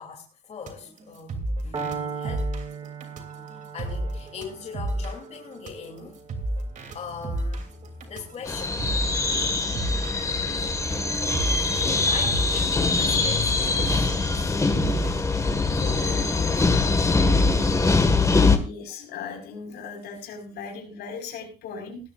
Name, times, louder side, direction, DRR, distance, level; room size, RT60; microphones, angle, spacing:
voice 1, 0.0-2.5 3.7-6.3 6.9-7.7 8.1-8.8 10.2-15.1 15.7-16.3 18.3-18.6, left 5 dB, 40° left, 3.1 m, -41 dB
sound 1, 0.7-10.2 10.8-11.0 11.3-11.7 12.1-15.2, right 1 dB, 45° right, 3.1 m, -31 dB
Piano, 1.7-9.7, right 5 dB, 30° right, 2.8 m, -39 dB
sound 2, 8.5-18.6, left 3 dB, 20° left, 1.7 m, -23 dB
voice 2, 18.5-22.0, left 5 dB, 75° left, 5.0 m, -38 dB
18.5 x 14.5 x 2.5 m
cardioid pair, 110°, 17 cm